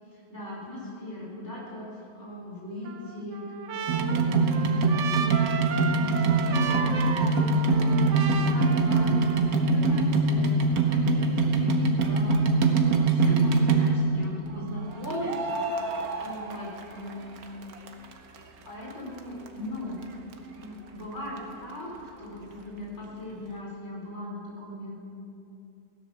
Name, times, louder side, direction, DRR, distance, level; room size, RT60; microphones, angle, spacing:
voice 1, 0.1-5.6 5.9-8.0 8.3-12.4 12.7-15.6 15.9-17.4 18.6-20.0 20.5-25.0, left 1 dB, 45° left, -5 dB, 4.8 m, -39 dB
Trumpet, 2.8-9.6, right 6 dB, 60° right, 1.0 m, -35 dB
sound 1, 3.9-14.2 15.0-17.1 17.4-18.4 18.9-19.0 19.2-19.3 19.5-19.6 20.0-20.1 20.3-20.4, right 3 dB, 75° right, 1.6 m, -23 dB
16.5 x 11.0 x 6.9 m, 2.7 s
omnidirectional pair, 1.6 m